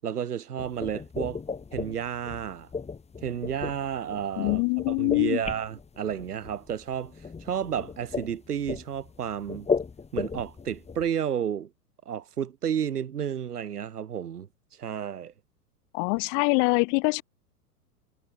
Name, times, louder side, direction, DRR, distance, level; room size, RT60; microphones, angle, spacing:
voice 1, 0.0-1.4 1.7-2.7 3.2-4.6 4.9-7.1 7.4-9.7 10.1-11.7 12.1-14.5 14.8-15.3, right 9 dB, 70° right, 7.8 m, -31 dB
sound 1, 0.6-11.1, left 5 dB, 15° left, 6.7 m, -35 dB
voice 2, 4.4-5.4 15.9-17.2, left 40 dB or more, 40° left, 2.4 m, -24 dB
figure-of-eight pair, 100°, 48 cm